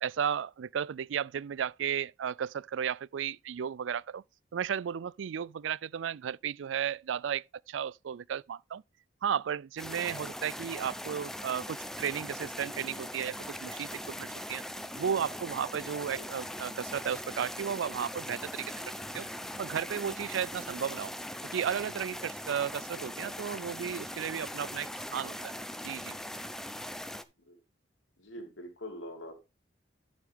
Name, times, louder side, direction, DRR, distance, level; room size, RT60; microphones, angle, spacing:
voice 1, 0.0-4.2 4.5-8.8 9.2-14.6 15.0-18.8 19.1-19.3 19.6-21.1 21.5-25.5 25.8-26.2, right 8 dB, 75° right, 0.4 m, -34 dB
sound 1, 9.8-27.2, left 1 dB, ahead, 0.6 m, -40 dB
voice 2, 22.9-23.3 27.5-27.6 28.2-29.3, left 1 dB, 80° left, 3.1 m, -44 dB
11.5 x 6.0 x 3.6 m
head